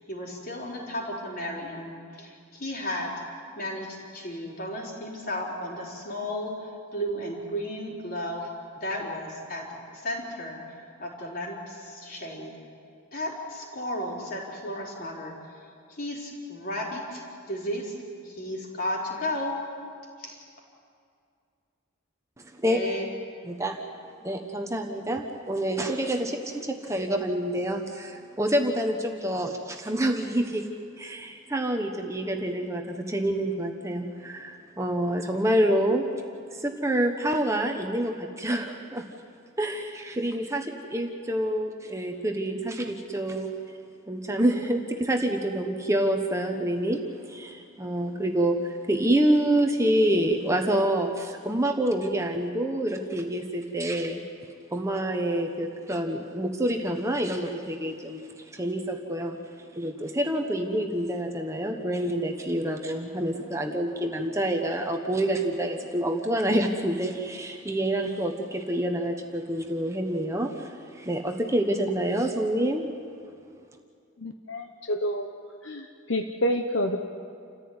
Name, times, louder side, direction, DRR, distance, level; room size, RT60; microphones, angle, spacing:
voice 1, 0.1-3.1 3.5-8.5 8.7-12.5 13.1-15.3 15.9-17.9 18.2-19.6 20.2-20.4 22.6-23.1, left 1 dB, 45° left, -2 dB, 4.5 m, -34 dB
voice 2, 23.5-23.8 24.2-30.7 31.0-36.1 36.5-39.0 39.6-43.5 44.1-54.2 54.7-59.4 59.7-72.9, right 1 dB, 15° right, 3 dB, 1.2 m, -27 dB
voice 3, 74.2-75.3 75.6-77.0, equal, 65° left, 5 dB, 1.1 m, -28 dB
28.5 x 14.5 x 9.7 m, 2.4 s
head